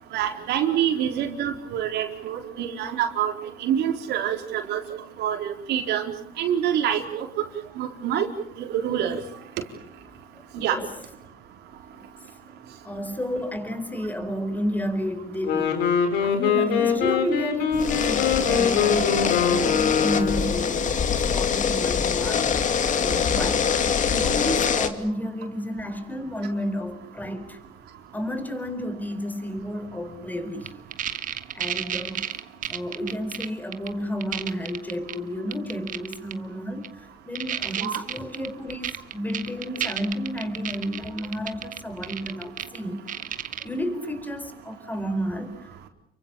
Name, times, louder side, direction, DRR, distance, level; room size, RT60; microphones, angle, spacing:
voice 1, 0.1-3.3 3.6-4.8 5.2-6.1 6.4-7.3 7.8-8.3 8.6-9.2 10.5-10.8 37.8-38.0, right 10 dB, 80° right, 4 dB, 4.3 m, -26 dB
voice 2, 11.7-12.4 12.8-15.9 16.2-22.5 22.9-23.7 24.1-27.6 28.1-30.7 31.5-32.2 32.7-43.1 43.6-45.9, equal, 10° left, 9 dB, 4.5 m, -31 dB
Wind instrument woodwind instrument, 15.3-20.6, left 7 dB, 85° left, 4.8 m, -23 dB
sound 1, 17.7-24.9, left 7 dB, 50° left, 2.5 m, -24 dB
sound 2, 30.7-33.5 33.7-33.9 34.2-35.1 35.5-36.3 36.8-36.9 37.4-42.8 43.1-43.6, right 10 dB, 50° right, 1.7 m, -31 dB
30.0 x 24.0 x 7.1 m, 0.74 s
cardioid pair, 110°, 17 cm